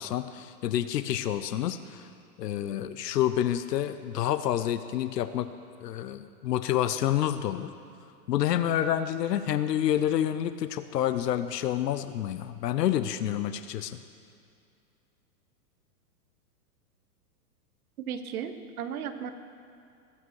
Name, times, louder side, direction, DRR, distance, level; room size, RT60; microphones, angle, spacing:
voice 1, 0.0-2.1 2.4-5.5 5.8-7.7 8.3-14.0, left 11 dB, 80° left, 12 dB, 0.8 m, -28 dB
voice 2, 18.1-19.3, right 8 dB, 65° right, 9 dB, 1.2 m, -35 dB
20.0 x 8.8 x 4.7 m, 2.5 s
hypercardioid pair, 160°, 48 cm